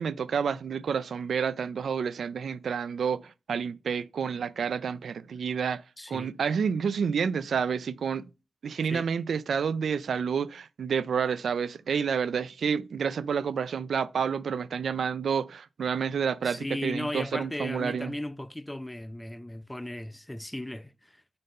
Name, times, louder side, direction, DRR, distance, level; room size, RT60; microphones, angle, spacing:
voice 1, 0.0-5.8 6.1-8.3 8.6-18.1, right 6 dB, 75° right, 0.4 m, -29 dB
voice 2, 6.0-6.3 8.9-9.1 16.4-21.2, left 1 dB, 10° left, 0.3 m, -36 dB
5.5 x 4.0 x 5.2 m
cardioid pair, 80°, 0 cm